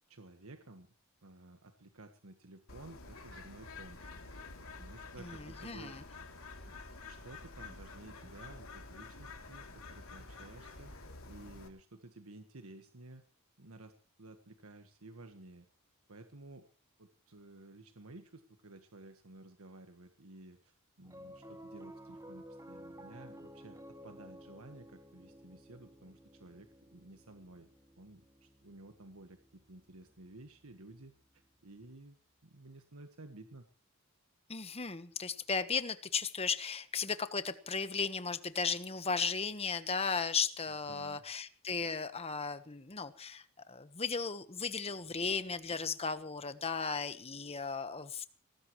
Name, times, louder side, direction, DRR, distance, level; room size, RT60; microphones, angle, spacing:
voice 1, 0.1-0.9 1.2-4.0 4.8-6.1 6.6-6.7 7.0-10.9 11.2-13.2 13.6-13.9 14.2-15.7 16.1-16.6 17.0-27.7 28.0-31.1 31.6-32.2 32.4-33.6 40.9-41.2, right 2 dB, 85° right, 6 dB, 1.5 m, -54 dB
Bird, 2.7-11.7, left 3 dB, 75° left, 3.0 m, -49 dB
voice 2, 5.2-6.0 34.5-48.3, left 5 dB, 30° left, 11 dB, 1.2 m, -36 dB
Piano, 21.0-31.5, equal, 15° right, 1.4 m, -54 dB
23.0 x 19.0 x 3.2 m, 0.39 s
head